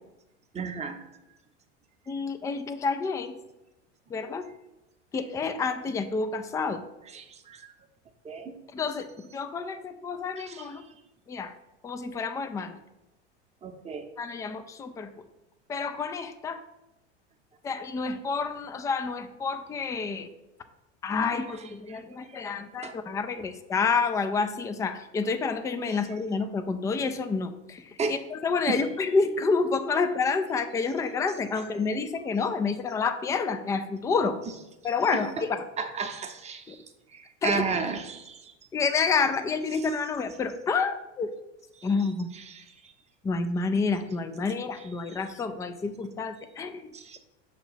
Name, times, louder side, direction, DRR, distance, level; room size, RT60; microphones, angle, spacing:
voice 1, 0.5-1.0 7.1-7.7 8.2-8.6 10.4-10.7 13.6-14.1 21.9-22.0 22.3-23.0 25.9-26.0 28.0-28.2 28.7-28.8 31.5-31.6 35.1-35.4 35.8-36.8 37.1-38.5 41.7-42.1 42.3-42.9 45.1-45.2 46.9-47.2, right 5 dB, 20° right, 5 dB, 0.8 m, -34 dB
voice 2, 2.1-3.3 4.1-4.4 5.1-6.8 8.7-10.8 11.3-11.5 11.8-12.8 14.2-15.1 15.7-16.6 17.6-20.3 21.0-34.4 34.8-35.6 36.7-36.8 37.4-37.6 38.7-41.3 41.8-42.3 43.2-46.9, left 4 dB, 10° left, 9 dB, 0.3 m, -29 dB
5.8 x 3.0 x 5.6 m, 0.98 s
hypercardioid pair, 90°, 35 cm